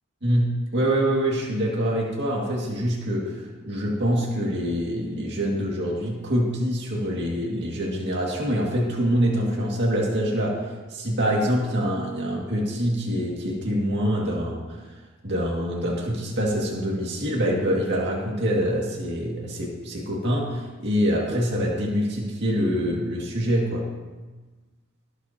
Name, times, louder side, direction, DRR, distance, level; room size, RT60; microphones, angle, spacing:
voice 1, 0.2-14.9 15.2-23.9, equal, 55° right, -3 dB, 2.2 m, -25 dB
23.0 x 8.1 x 2.9 m, 1.3 s
head